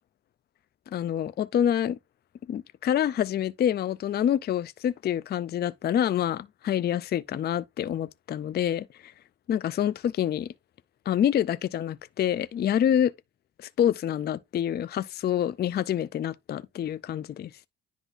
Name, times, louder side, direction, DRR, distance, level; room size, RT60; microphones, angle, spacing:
voice 1, 0.9-2.0 2.5-9.1 9.5-10.5 11.1-13.1 13.6-17.5, left 10 dB, 35° left, 0.4 m, -27 dB
10.0 x 3.9 x 2.5 m
cardioid pair, 90°, 30 cm